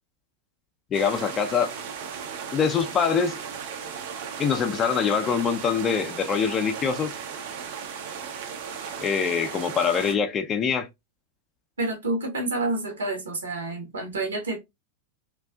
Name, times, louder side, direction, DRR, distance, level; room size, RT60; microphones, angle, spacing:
voice 1, 0.9-1.7 2.5-3.4 4.4-7.1 9.0-10.9, left 6 dB, 25° left, 0.4 m, -24 dB
sound 1, 0.9-10.2, right 7 dB, 55° right, 0.4 m, -36 dB
voice 2, 11.8-14.6, right 2 dB, 70° right, 0.8 m, -28 dB
2.4 x 2.3 x 2.3 m
figure-of-eight pair, 90°, 0 cm